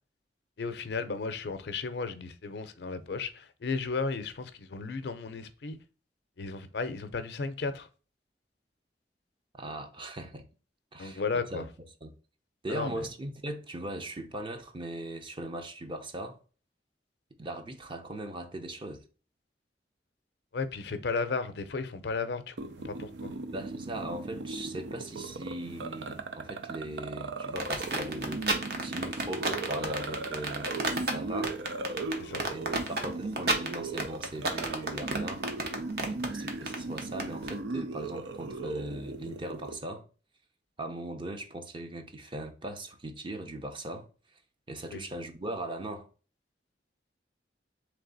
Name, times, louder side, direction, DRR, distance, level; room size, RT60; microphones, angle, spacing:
voice 1, 0.6-5.8 6.4-7.9 11.0-11.7 12.7-13.1 20.5-23.3 32.2-32.4 44.9-45.0, left 4 dB, 70° left, 0.5 m, -34 dB
voice 2, 9.6-10.4 10.9-11.2 11.5-11.7 12.0-12.1 12.6-16.4 17.4-19.0 23.5-28.5 28.8-30.7 31.1-31.6 32.5-35.4 36.0-40.1 40.8-44.1 44.7-46.1, right 1 dB, 30° right, 0.6 m, -39 dB
sound 1, 22.6-39.8, right 3 dB, 80° right, 0.5 m, -38 dB
sound 2, 27.6-37.5, right 2 dB, 60° right, 0.9 m, -31 dB
3.4 x 3.3 x 3.8 m
head